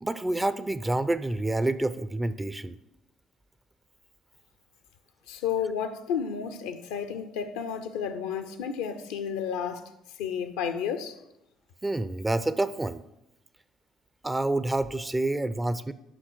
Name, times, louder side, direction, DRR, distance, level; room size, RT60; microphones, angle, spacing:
voice 1, 0.0-2.7 11.8-13.0 14.2-15.9, right 2 dB, 15° right, 0.5 m, -28 dB
voice 2, 5.3-9.8 10.2-11.2, left 7 dB, 70° left, 0.6 m, -31 dB
7.9 x 5.7 x 6.1 m
figure-of-eight pair, 45°, 0 cm